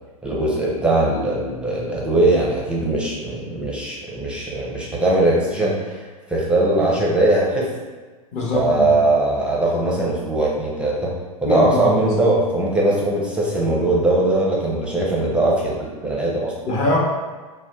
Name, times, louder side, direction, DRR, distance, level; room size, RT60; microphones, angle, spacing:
voice 1, 0.2-7.7 8.5-11.1 11.4-16.5, right 2 dB, 5° right, -4 dB, 0.5 m, -20 dB
voice 2, 8.3-8.9 11.5-12.1 16.7-17.0, left 2 dB, 40° left, -3 dB, 0.8 m, -22 dB
2.6 x 2.2 x 3.4 m, 1.3 s
figure-of-eight pair, 95°, 19 cm